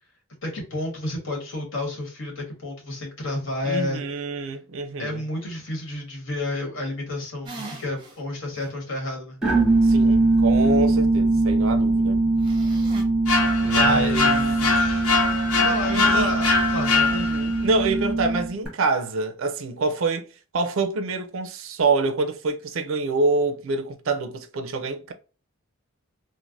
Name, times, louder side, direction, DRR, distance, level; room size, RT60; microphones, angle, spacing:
voice 1, 0.4-4.0 5.0-9.4 13.7-15.0 15.6-17.1, left 2 dB, 60° left, 1.5 m, -31 dB
voice 2, 3.6-5.2 9.8-12.2 13.6-14.4 15.9-16.3 17.1-20.3 20.5-25.1, right 3 dB, 65° right, 0.5 m, -26 dB
sound 1, 7.4-8.2 8.6-8.7 12.4-13.0, right 2 dB, 20° right, 0.7 m, -39 dB
sound 2, 9.4-18.7, right 2 dB, 5° right, 1.1 m, -22 dB
sound 3, 13.3-17.6, left 4 dB, 85° left, 0.9 m, -23 dB
3.2 x 2.1 x 2.5 m
head